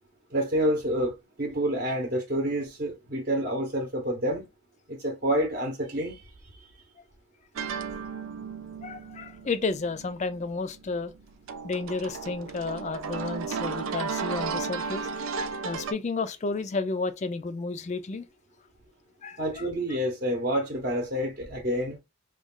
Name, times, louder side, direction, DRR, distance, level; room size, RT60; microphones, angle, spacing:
voice 1, 0.3-4.5 4.9-6.2 6.5-6.7 19.4-22.0, equal, 40° right, 0.8 m, -28 dB
sound 1, 7.6-15.9, right 5 dB, 80° right, 0.5 m, -34 dB
voice 2, 8.8-11.1 11.6-15.1 15.6-18.2 19.2-20.0, left 4 dB, 35° left, 0.4 m, -32 dB
3.1 x 2.3 x 3.6 m
head